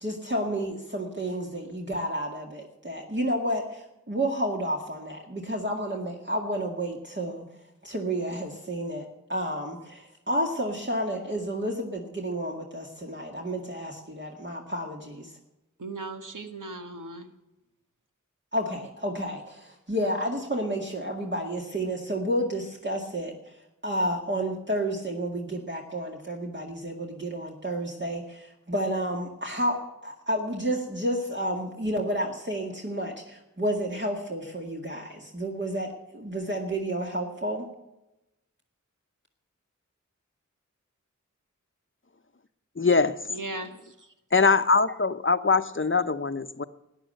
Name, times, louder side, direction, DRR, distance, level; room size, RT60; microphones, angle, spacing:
voice 1, 0.0-7.4 7.8-15.3 18.5-23.3 23.8-37.7, right 1 dB, 35° right, -1 dB, 2.1 m, -31 dB
voice 2, 15.8-17.3 43.3-44.1, right 2 dB, 90° right, 6 dB, 1.6 m, -38 dB
voice 3, 42.8-43.2 44.3-46.6, left 4 dB, 40° left, 11 dB, 0.8 m, -22 dB
13.5 x 10.0 x 7.9 m, 0.93 s
wide cardioid pair, 45°, 30 cm